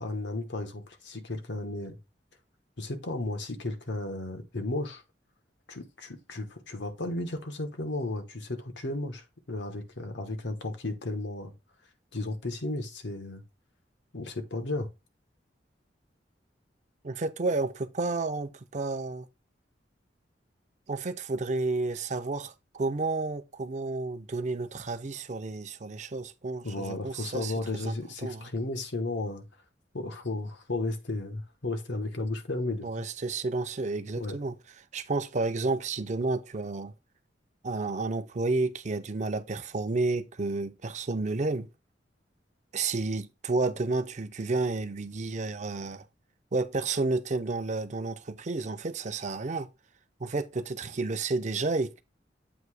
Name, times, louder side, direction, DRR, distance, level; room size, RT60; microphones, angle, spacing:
voice 1, 0.0-2.0 2.8-5.0 5.7-11.5 12.1-13.4 14.1-14.9 26.6-29.5 29.9-32.9 34.2-34.4, left 2 dB, 80° left, 1.1 m, -34 dB
voice 2, 17.0-19.3 20.9-27.5 27.8-27.9 28.2-28.4 32.8-34.6 34.9-36.9 37.6-41.7 42.7-46.0 46.5-49.7 50.2-52.0, right 3 dB, 40° right, 0.5 m, -31 dB
7.9 x 2.8 x 4.8 m
head